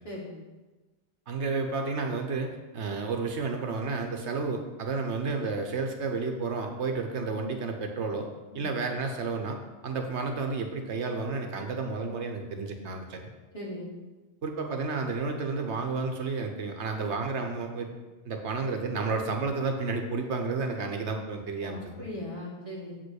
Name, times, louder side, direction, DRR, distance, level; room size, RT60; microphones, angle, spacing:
voice 1, 1.3-8.3 8.5-9.6 9.8-13.3 14.4-17.9 18.2-22.1, right 4 dB, 85° right, 4 dB, 1.3 m, -31 dB
voice 2, 13.5-13.9 21.6-22.9, left 1 dB, 30° left, -6 dB, 2.7 m, -39 dB
7.9 x 5.2 x 6.4 m, 1.2 s
omnidirectional pair, 1.1 m